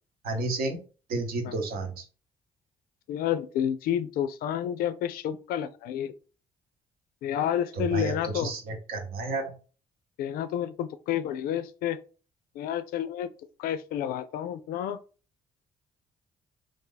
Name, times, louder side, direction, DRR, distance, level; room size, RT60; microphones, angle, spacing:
voice 1, 0.2-0.8 1.1-2.1 7.8-9.5, right 3 dB, 70° right, 0.9 m, -31 dB
voice 2, 3.1-6.1 7.2-8.5 10.2-12.0 12.5-13.3 13.6-15.0, left 10 dB, 75° left, 0.4 m, -30 dB
2.9 x 2.5 x 3.8 m
supercardioid pair, 55°, 16 cm